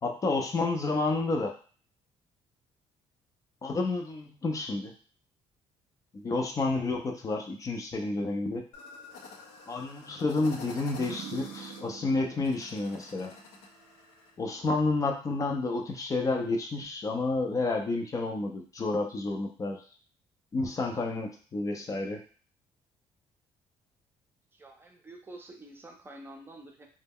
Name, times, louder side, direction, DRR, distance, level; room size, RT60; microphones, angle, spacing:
voice 1, 0.0-1.5 3.6-4.9 6.1-8.7 9.7-13.3 14.4-19.8 20.5-22.2, left 3 dB, 30° left, 2 dB, 0.5 m, -30 dB
sound 1, 8.7-14.3, left 3 dB, 85° left, 0.6 m, -48 dB
sound 2, 10.3-14.0, right 9 dB, 75° right, 0.4 m, -46 dB
voice 2, 24.5-26.9, right 1 dB, 20° right, 2 dB, 0.5 m, -48 dB
2.1 x 2.0 x 3.6 m, 0.41 s
cardioid pair, 95°, 10 cm